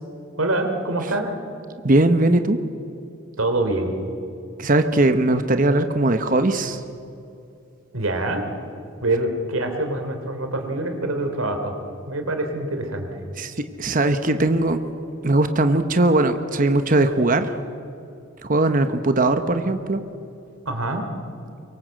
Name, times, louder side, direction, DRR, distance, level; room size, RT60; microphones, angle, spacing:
voice 1, 0.4-1.4 3.4-3.9 7.9-8.4 9.0-11.7 12.1-13.2 20.6-21.0, right 2 dB, 80° right, 5 dB, 3.3 m, -25 dB
voice 2, 1.8-2.6 4.6-6.8 13.4-14.8 15.2-17.6 18.4-20.0, right 2 dB, 40° right, 8 dB, 1.0 m, -19 dB
24.0 x 24.0 x 7.7 m, 2.6 s
head